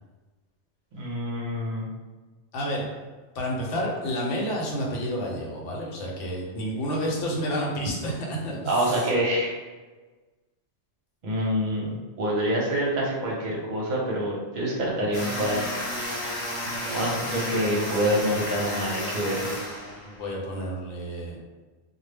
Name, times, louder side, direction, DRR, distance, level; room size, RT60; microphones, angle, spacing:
voice 1, 0.9-1.8 8.7-9.6 11.2-15.6 16.9-19.5, equal, 50° right, -3 dB, 0.7 m, -26 dB
voice 2, 2.5-2.9 3.3-9.1 16.7-16.9 20.0-21.4, equal, 80° left, -2 dB, 1.0 m, -30 dB
sound 1, 15.1-20.3, left 1 dB, 45° left, 0.8 m, -32 dB
2.1 x 2.0 x 3.3 m, 1.3 s
omnidirectional pair, 1.2 m